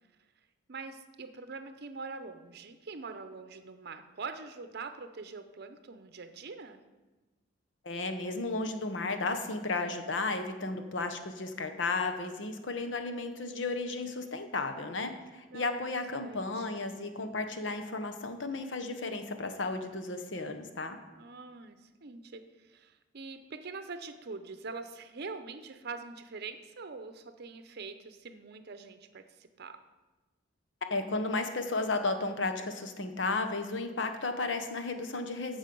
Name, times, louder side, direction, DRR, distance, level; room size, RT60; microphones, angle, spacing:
voice 1, 0.7-6.8 15.5-16.7 21.2-22.4 22.7-29.9, right 4 dB, 55° right, 9 dB, 0.7 m, -44 dB
voice 2, 7.8-21.0 30.9-35.6, left 3 dB, 70° left, 7 dB, 1.0 m, -34 dB
14.5 x 5.5 x 5.4 m, 1.2 s
head